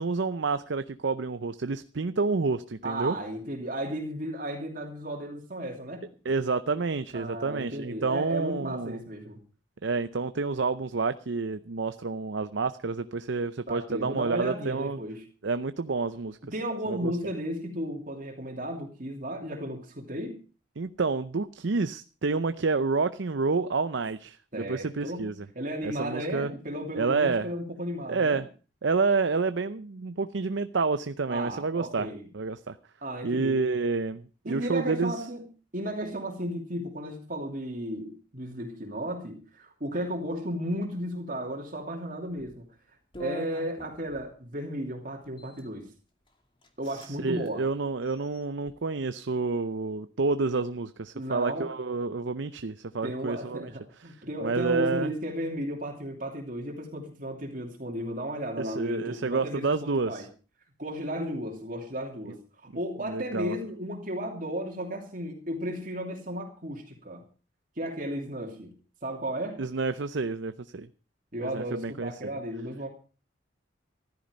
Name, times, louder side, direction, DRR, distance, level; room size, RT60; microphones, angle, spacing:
voice 1, 0.0-3.2 6.2-9.0 9.8-15.0 15.4-16.4 16.9-17.1 20.8-25.5 25.8-26.5 26.9-27.5 28.1-28.5 28.8-32.1 32.3-32.8 33.2-35.2 46.9-53.7 54.1-54.2 54.4-55.1 58.6-60.3 63.1-63.5 69.6-70.9 71.4-72.1, right 4 dB, 65° right, 11 dB, 0.6 m, -29 dB
voice 2, 2.8-6.0 7.1-9.4 13.7-15.2 16.5-20.4 24.5-25.3 25.5-28.4 31.3-32.3 33.0-33.6 34.4-35.4 35.7-42.7 43.2-45.9 46.8-47.7 51.1-51.7 53.0-59.7 60.0-60.3 60.8-62.4 62.7-67.2 67.8-68.7 69.0-69.6 71.3-72.9, equal, 45° right, 1 dB, 2.9 m, -34 dB
sound 1, 42.3-42.6 43.1-44.3 45.2-45.7 46.3-46.4 46.6-47.1 47.4-47.5 48.0-48.7, left 1 dB, 25° left, 2.4 m, -43 dB
14.5 x 13.5 x 5.2 m, 0.36 s
head